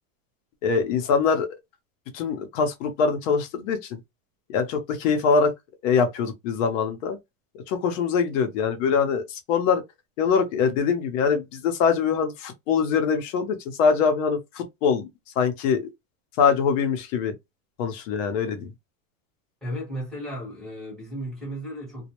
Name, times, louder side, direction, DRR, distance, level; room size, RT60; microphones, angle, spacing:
voice 1, 0.6-1.5 2.1-4.0 4.5-5.5 5.8-7.2 7.7-9.8 10.2-15.0 15.4-15.8 16.4-17.3 17.8-18.7, left 6 dB, 65° left, 0.8 m, -23 dB
voice 2, 19.6-22.1, equal, ahead, 1.1 m, -34 dB
2.3 x 2.1 x 2.9 m
supercardioid pair, 155°, 40 cm